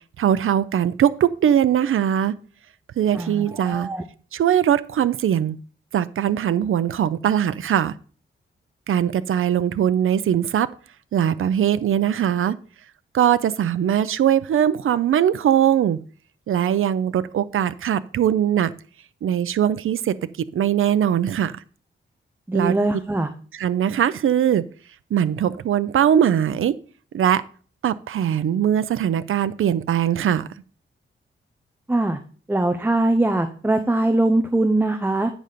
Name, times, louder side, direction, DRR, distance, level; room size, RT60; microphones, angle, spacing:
voice 1, 0.2-2.3 3.0-3.9 4.3-5.6 5.9-7.9 8.9-10.7 11.1-12.6 13.1-16.0 16.5-18.7 19.2-21.6 22.5-22.7 23.5-24.6 25.1-26.7 27.1-27.4 27.8-30.5, right 9 dB, 80° right, 0.6 m, -21 dB
voice 2, 3.1-4.0 22.5-23.3 31.9-32.2 32.5-35.3, right 2 dB, 10° right, 0.7 m, -21 dB
9.0 x 4.0 x 6.7 m
wide cardioid pair, 130°, 21 cm